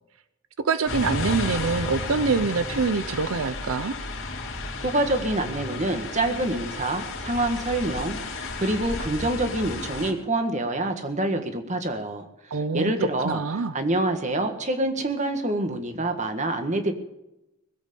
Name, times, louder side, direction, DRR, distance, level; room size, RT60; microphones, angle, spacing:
voice 1, 0.6-3.9 12.5-12.9 13.2-13.7, right 4 dB, 80° right, 13 dB, 0.6 m, -25 dB
sound 1, 0.8-10.1, left 2 dB, 60° left, 3.2 m, -33 dB
voice 2, 4.8-12.3 12.7-16.9, right 1 dB, 35° right, 7 dB, 1.7 m, -26 dB
20.5 x 8.4 x 6.9 m, 0.91 s
head